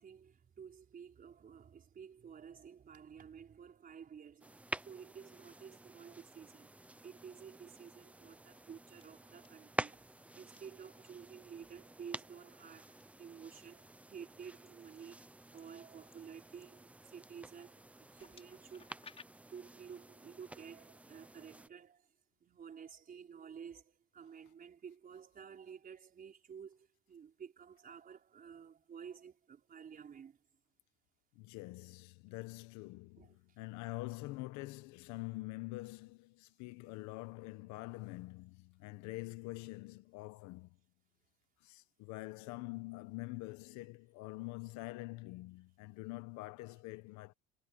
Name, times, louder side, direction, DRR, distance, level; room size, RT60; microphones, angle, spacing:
voice 1, 0.0-4.6 4.8-6.7 7.0-10.0 10.3-15.2 15.5-17.8 18.1-19.0 19.5-22.1 22.4-30.4 33.2-33.3, right 7 dB, 30° right, 4.6 m, -52 dB
sound 1, 4.4-21.7, right 2 dB, 5° right, 0.6 m, -49 dB
sound 2, 8.4-8.6 9.0-9.5 10.3-10.6 11.5-11.7 12.5-13.0 13.6-14.0 14.6-17.3 18.0-19.2, left 5 dB, 20° left, 4.8 m, -61 dB
voice 2, 31.3-40.8 41.6-47.3, left 21 dB, 65° left, 1.1 m, -45 dB
cardioid pair, 145°, 30 cm